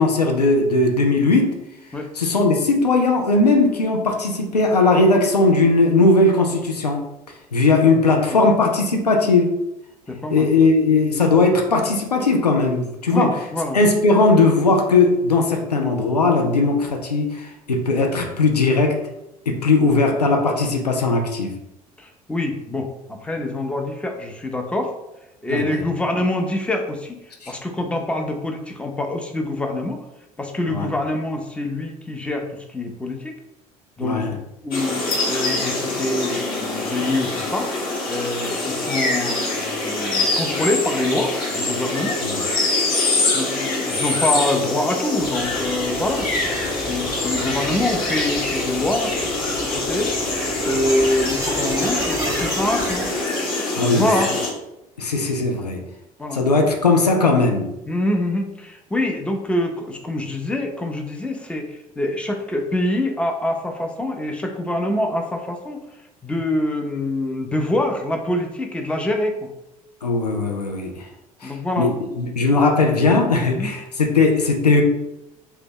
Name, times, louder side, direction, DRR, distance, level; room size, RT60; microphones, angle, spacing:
voice 1, 0.0-1.6 2.2-7.0 7.5-9.6 10.3-13.3 13.7-19.0 19.5-21.6 25.5-25.8 27.4-27.5 30.7-30.9 34.0-34.3 42.2-42.4 53.7-54.1 55.0-55.8 56.3-57.7 70.0-71.0 71.4-74.8, left 3 dB, 85° left, 3 dB, 0.4 m, -18 dB
voice 2, 8.1-8.4 10.1-10.5 13.1-13.8 22.0-24.9 25.4-27.2 27.5-30.0 30.4-33.4 34.0-35.0 35.3-37.7 38.1-42.2 43.2-46.3 46.8-50.2 50.6-53.1 53.8-54.3 56.2-56.4 57.9-65.8 66.2-69.5 71.4-71.9 73.5-73.7, left 1 dB, 5° left, 3 dB, 0.5 m, -25 dB
sound 1, 34.7-54.5, left 2 dB, 45° left, 1.0 m, -24 dB
sound 2, 45.2-53.2, right 1 dB, 15° right, 0.9 m, -34 dB
2.8 x 2.1 x 3.6 m, 0.90 s
figure-of-eight pair, 60°, 20 cm